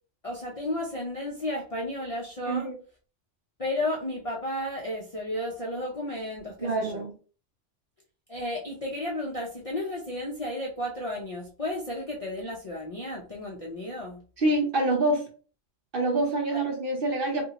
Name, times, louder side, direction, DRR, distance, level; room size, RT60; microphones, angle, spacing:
voice 1, 0.2-2.7 3.6-7.0 8.3-14.2 16.5-16.6, left 1 dB, 40° left, -3 dB, 0.5 m, -33 dB
voice 2, 6.6-7.1 14.4-15.3 15.9-17.4, right 2 dB, 50° right, 1 dB, 1.0 m, -26 dB
2.6 x 2.6 x 2.9 m, 0.37 s
omnidirectional pair, 1.3 m